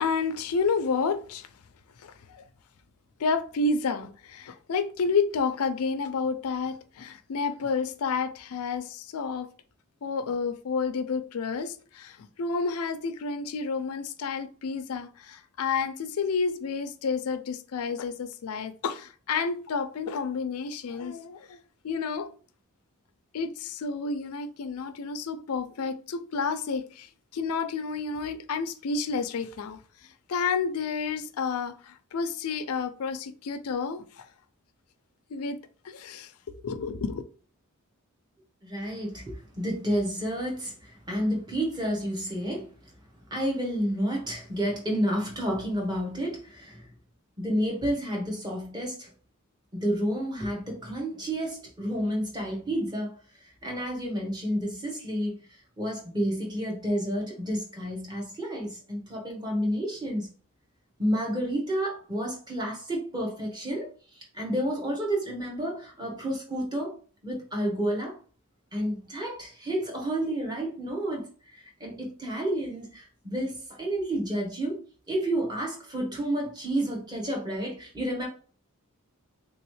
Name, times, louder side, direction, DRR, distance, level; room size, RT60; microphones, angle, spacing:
voice 1, 0.0-1.5 2.0-2.4 3.2-9.5 10.0-21.6 21.8-22.3 23.3-29.8 30.3-34.2 35.3-35.6 35.8-36.3 36.6-37.2, left 5 dB, 85° left, 0.4 m, -30 dB
voice 2, 38.6-42.9 43.3-46.9 47.4-49.1 49.7-53.2 53.6-60.3 61.0-66.9 67.2-68.2 68.7-74.8 75.1-78.3, right 1 dB, 20° right, 1.0 m, -30 dB
3.5 x 3.0 x 3.1 m
head